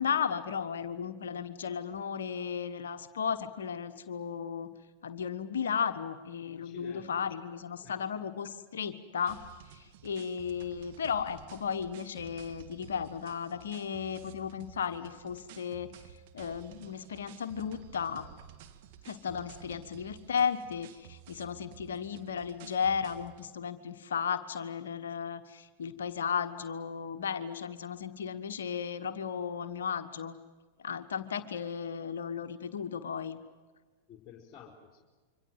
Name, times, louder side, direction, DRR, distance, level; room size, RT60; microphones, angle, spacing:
voice 1, 0.0-4.7 5.0-9.4 9.7-15.9 16.3-18.2 19.0-30.4 30.8-33.4, left 7 dB, 70° left, 8 dB, 1.3 m, -35 dB
voice 2, 6.6-7.3 7.8-8.0 34.1-35.0, left 7 dB, 30° left, 1 dB, 4.2 m, -51 dB
sound 1, 9.3-23.5, right 10 dB, 55° right, 1.9 m, -53 dB
27.0 x 24.5 x 7.5 m, 1.4 s
figure-of-eight pair, 95°, 0 cm